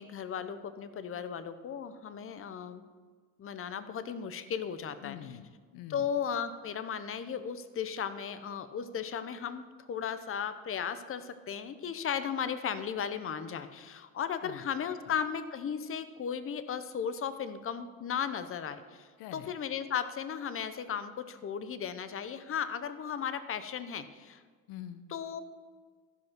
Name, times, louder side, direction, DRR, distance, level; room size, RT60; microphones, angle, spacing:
voice 1, 0.0-2.8 3.4-5.2 5.9-9.6 9.9-24.4 25.1-25.4, left 7 dB, 40° left, 12 dB, 0.8 m, -36 dB
voice 2, 5.0-6.1 14.4-14.7 15.1-15.2 19.2-19.5 24.7-25.1, left 10 dB, 85° left, 12 dB, 0.7 m, -45 dB
14.0 x 5.2 x 6.0 m, 1.5 s
supercardioid pair, 90°, 35 cm